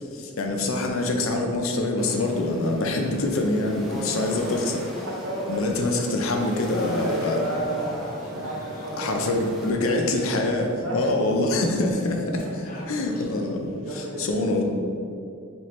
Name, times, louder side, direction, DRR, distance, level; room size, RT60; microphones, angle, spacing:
voice 1, 0.4-4.7 5.5-7.4 9.0-12.4 12.9-14.6, left 2 dB, 80° left, 3 dB, 0.5 m, -25 dB
sound 1, 2.0-9.7, left 1 dB, ahead, 0.5 m, -41 dB
voice 2, 3.9-4.6 4.9-6.0 6.9-10.1 10.8-11.2 12.4-12.8 13.8-14.3, right 1 dB, 75° right, -3 dB, 0.9 m, -33 dB
sound 2, 6.2-13.4, left 1 dB, 40° left, 0.7 m, -42 dB
3.3 x 3.0 x 4.3 m, 2.5 s
head